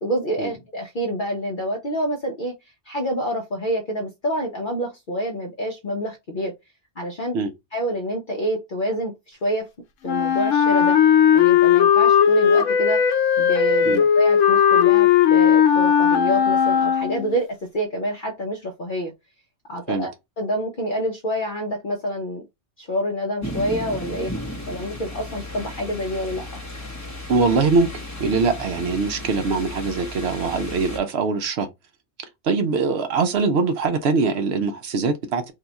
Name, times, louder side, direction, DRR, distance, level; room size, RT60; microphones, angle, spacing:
voice 1, 0.0-2.5 2.9-6.5 7.0-7.4 7.7-9.7 10.0-11.0 11.3-13.0 13.4-19.1 19.7-20.1 20.4-22.4 22.8-24.3 24.7-26.6, equal, 50° left, 0.8 m, -27 dB
Wind instrument woodwind instrument, 10.0-17.4, left 8 dB, 90° left, 0.9 m, -17 dB
sound 1, 23.4-31.0, left 1 dB, 15° left, 0.7 m, -34 dB
voice 2, 27.3-27.9 28.2-31.7 32.4-35.5, right 4 dB, 65° right, 0.9 m, -22 dB
2.7 x 2.3 x 3.9 m
omnidirectional pair, 1.2 m